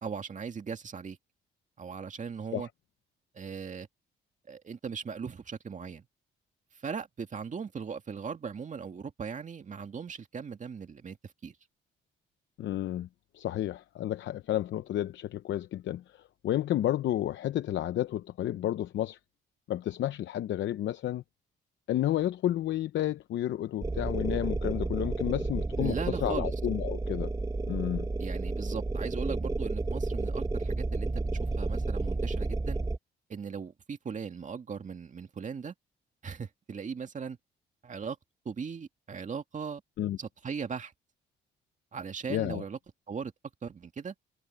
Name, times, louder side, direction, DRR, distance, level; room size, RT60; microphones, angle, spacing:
voice 1, 0.0-1.2 1.8-2.7 3.3-3.9 4.5-6.1 6.7-11.2 11.4-11.6 25.8-26.5 28.2-32.8 33.3-35.7 36.2-37.4 37.8-38.2 38.5-39.8 40.2-40.9 41.9-42.8 43.1-43.3 43.6-44.1, right 6 dB, 40° right, 2.2 m, -38 dB
voice 2, 12.6-13.1 13.3-19.2 19.7-21.2 21.9-27.3 27.6-28.1 40.0-40.2 42.3-42.6, left 12 dB, 70° left, 0.7 m, -31 dB
sound 1, 23.8-33.0, right 3 dB, 15° right, 1.2 m, -31 dB
cardioid pair, 90°, 20 cm